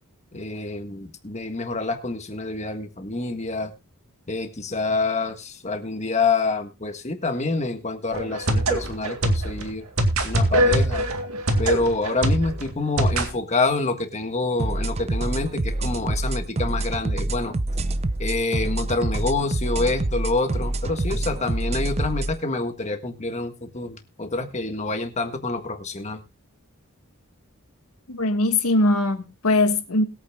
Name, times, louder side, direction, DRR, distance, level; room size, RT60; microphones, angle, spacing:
voice 1, 0.3-3.7 4.3-9.8 10.2-11.1 11.6-17.5 18.2-26.2, left 3 dB, 30° left, 1.6 m, -27 dB
sound 1, 8.1-13.3, right 1 dB, 75° right, 2.2 m, -23 dB
sound 2, 14.6-22.3, right 2 dB, 30° right, 0.6 m, -26 dB
voice 2, 28.1-30.0, left 2 dB, 90° left, 1.6 m, -21 dB
21.5 x 8.7 x 2.3 m
head